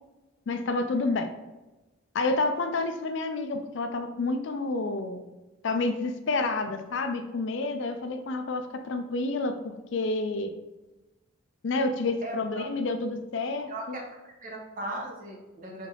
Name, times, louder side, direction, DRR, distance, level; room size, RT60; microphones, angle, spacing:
voice 1, 0.5-1.3 2.1-5.2 5.6-10.5 11.6-14.0, left 3 dB, 60° left, 7 dB, 0.4 m, -29 dB
voice 2, 12.2-12.6 13.7-15.9, right 1 dB, 40° right, 0 dB, 0.8 m, -38 dB
4.1 x 3.3 x 3.8 m, 1.1 s
head